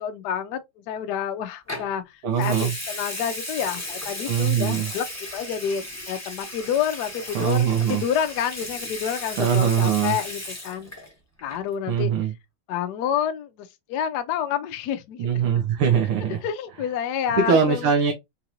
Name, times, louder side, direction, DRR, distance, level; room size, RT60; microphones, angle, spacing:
voice 1, 0.0-2.0 2.4-5.1 5.3-10.9 11.4-12.1 12.7-15.6 16.4-17.9, left 8 dB, 75° left, 0.9 m, -28 dB
Water tap faucet / Sink (filling or washing) / Liquid, 1.7-1.9 2.4-11.1 11.4-11.7, left 1 dB, 10° left, 0.8 m, -35 dB
voice 2, 2.2-2.7 4.3-4.9 7.3-8.0 9.4-10.2 11.9-12.3 15.2-16.4 17.4-18.1, right 7 dB, 80° right, 1.7 m, -22 dB
4.5 x 2.5 x 2.8 m
omnidirectional pair, 2.4 m